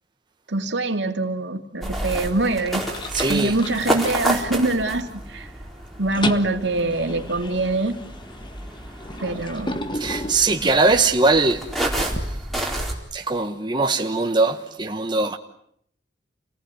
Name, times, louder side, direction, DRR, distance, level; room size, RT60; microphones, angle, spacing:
voice 1, 0.5-2.8 3.3-5.5 6.0-8.0 9.2-9.9, right 2 dB, 65° right, 2.6 m, -24 dB
sound 1, 1.8-12.9, right 1 dB, ahead, 4.3 m, -30 dB
sound 2, 2.1-2.4 2.8-4.9 5.3-5.6 5.9-11.1, left 1 dB, 25° left, 1.6 m, -33 dB
voice 2, 3.1-3.6 9.9-11.6 12.2-12.4 13.1-15.4, right 3 dB, 25° right, 1.4 m, -21 dB
29.0 x 19.0 x 9.7 m
head